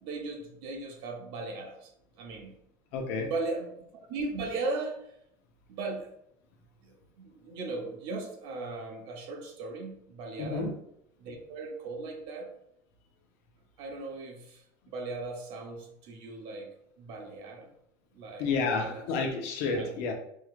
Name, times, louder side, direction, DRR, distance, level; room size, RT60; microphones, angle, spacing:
voice 1, 0.0-1.9 2.2-2.6 3.1-3.7 4.1-5.1 5.7-6.1 6.8-10.7 11.2-12.5 13.8-16.7 17.0-17.7 18.1-18.5 18.7-19.0 19.7-19.9, right 3 dB, 55° right, 3 dB, 0.8 m, -37 dB
voice 2, 2.9-3.3 10.4-10.7 18.4-20.1, left 4 dB, 65° left, 2 dB, 0.8 m, -30 dB
4.7 x 3.1 x 2.4 m, 0.73 s
cardioid pair, 165°, 10 cm